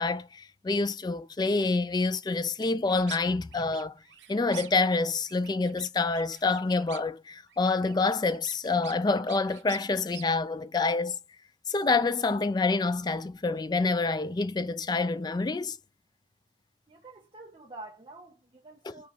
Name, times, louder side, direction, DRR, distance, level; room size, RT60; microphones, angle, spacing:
voice 1, 0.0-3.9 4.3-11.2 11.7-15.8 18.8-18.9, left 3 dB, 25° left, 0.3 m, -27 dB
sound 1, 2.6-3.2 3.5-5.0 5.3-7.2 7.5-10.3, right 10 dB, 85° right, 0.8 m, -47 dB
voice 2, 16.9-19.1, right 2 dB, 30° right, 1.2 m, -47 dB
5.1 x 3.5 x 5.5 m
head